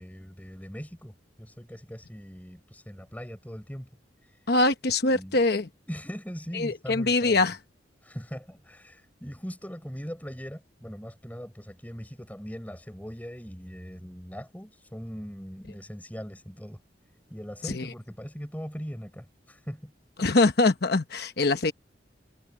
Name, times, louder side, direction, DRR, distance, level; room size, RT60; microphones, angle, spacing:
voice 1, 0.0-3.9 4.2-4.4 5.1-5.4 5.9-7.4 8.0-16.8 17.3-19.9, equal, 10° left, 6.4 m, -40 dB
voice 2, 4.5-5.7 6.5-7.6 17.6-17.9 20.2-21.7, left 2 dB, 60° left, 1.1 m, -23 dB
head